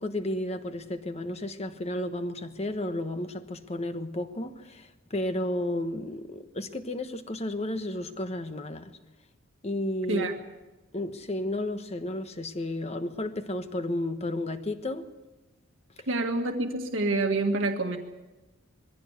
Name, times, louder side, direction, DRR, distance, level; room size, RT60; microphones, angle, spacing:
voice 1, 0.0-8.9 9.6-10.3 10.9-15.0, left 1 dB, 30° left, 1.3 m, -32 dB
voice 2, 16.1-18.0, right 2 dB, 70° right, 1.7 m, -27 dB
22.5 x 16.0 x 8.3 m
head